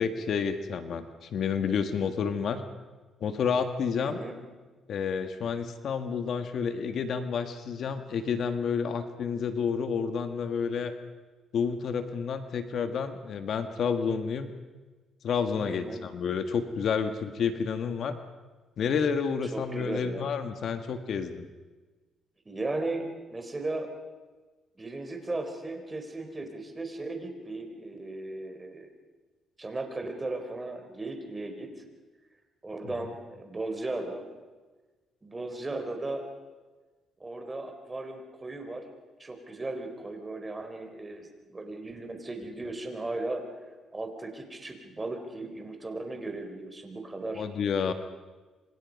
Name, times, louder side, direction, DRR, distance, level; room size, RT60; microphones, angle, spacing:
voice 1, 0.0-2.6 3.2-4.2 4.9-10.9 11.5-14.5 15.2-18.1 18.8-21.5 32.8-32.9 47.3-47.9, left 6 dB, 60° left, 8 dB, 1.6 m, -30 dB
voice 2, 4.0-4.4 15.7-16.0 19.4-20.3 22.5-23.9 24.8-28.9 29.6-31.8 32.6-34.2 35.2-36.2 37.2-38.8 39.2-43.4 43.9-47.4, right 2 dB, 20° right, 5 dB, 4.2 m, -36 dB
27.0 x 26.0 x 5.4 m, 1.3 s
cardioid pair, 95°, 0 cm